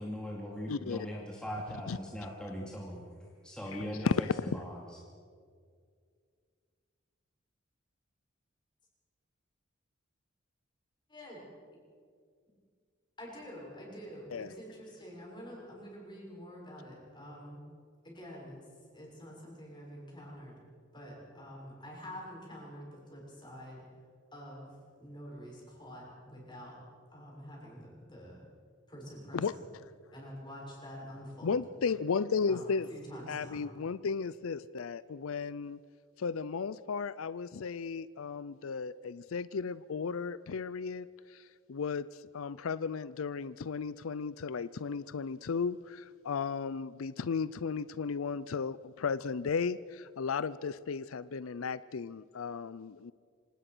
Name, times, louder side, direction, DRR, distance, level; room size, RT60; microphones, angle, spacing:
voice 1, 0.0-3.0 3.4-4.8, equal, 5° left, -3 dB, 2.5 m, -40 dB
voice 2, 0.7-1.1 1.9-2.0 3.7-4.5 14.3-14.5 29.3-29.5 31.4-32.9 33.3-35.8 36.2-53.1, left 5 dB, 90° left, 17 dB, 0.5 m, -35 dB
voice 3, 11.1-11.4 13.2-17.6 18.0-18.6 18.9-20.6 20.9-23.9 24.3-26.8 27.1-28.5 28.9-29.6 30.1-31.6 32.5-33.6, equal, 20° left, -3 dB, 6.7 m, -47 dB
26.0 x 18.5 x 6.1 m, 2.1 s
head